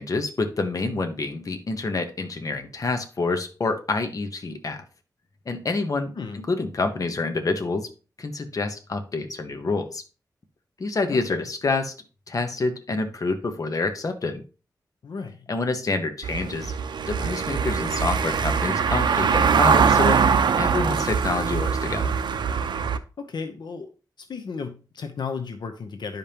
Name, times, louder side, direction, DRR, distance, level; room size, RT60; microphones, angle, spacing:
voice 1, 0.0-4.8 5.5-7.9 8.2-10.0 10.8-11.9 12.3-14.4 15.5-16.7 17.1-20.2 20.6-22.1, left 3 dB, 50° left, 6 dB, 1.0 m, -27 dB
voice 2, 11.1-11.4 15.0-15.5 23.2-23.9 24.2-26.2, left 5 dB, 75° left, 5 dB, 0.8 m, -34 dB
Car passing by / Engine, 16.2-23.0, right 6 dB, 90° right, 0.6 m, -22 dB
11.0 x 5.2 x 2.9 m, 0.33 s
wide cardioid pair, 105°, 8 cm